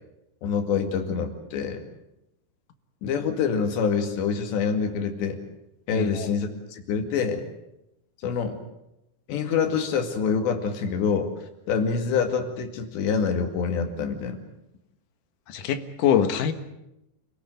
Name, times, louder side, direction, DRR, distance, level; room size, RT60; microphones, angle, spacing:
voice 1, 0.4-1.8 3.0-5.4 5.9-7.4 8.2-8.6 9.3-11.3 11.7-14.4, left 6 dB, 80° left, 6 dB, 4.4 m, -26 dB
voice 2, 5.9-6.3 15.5-16.5, left 8 dB, 60° left, 8 dB, 2.5 m, -24 dB
28.5 x 17.5 x 8.0 m, 0.88 s
omnidirectional pair, 5.0 m